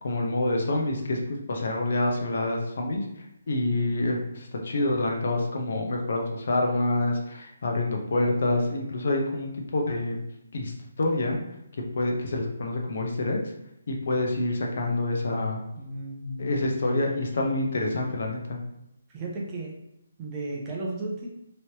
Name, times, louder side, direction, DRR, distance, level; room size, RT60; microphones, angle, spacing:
voice 1, 0.0-1.2 1.5-3.1 3.5-10.2 10.5-10.7 11.0-11.4 12.0-13.4 13.9-15.6 16.4-18.6, left 2 dB, 55° left, 1 dB, 0.7 m, -27 dB
voice 2, 15.8-17.0 19.1-19.7 20.2-21.3, right 2 dB, 15° right, -3 dB, 0.5 m, -34 dB
3.1 x 3.0 x 2.8 m, 0.82 s
hypercardioid pair, 170°, 0 cm